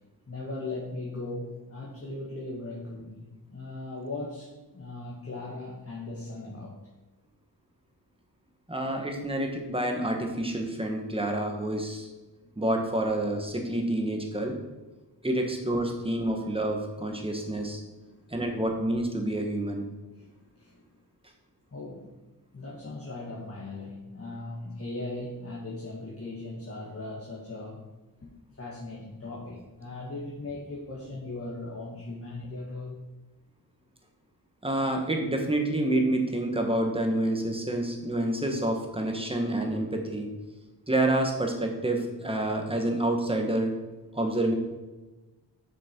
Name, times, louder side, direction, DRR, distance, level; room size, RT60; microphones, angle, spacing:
voice 1, 0.3-6.8 12.4-12.5 18.1-18.3 20.1-20.9 21.7-22.1 22.5-27.8 28.2-28.3 28.6-33.0, left 2 dB, 35° left, -4 dB, 1.8 m, -38 dB
voice 2, 8.7-12.1 12.6-14.6 15.2-17.8 18.3-19.9 34.6-40.3 40.9-43.7 44.1-44.5, right 1 dB, 15° right, 2 dB, 1.6 m, -28 dB
8.4 x 6.2 x 4.6 m, 1.1 s
wide cardioid pair, 100°, 40 cm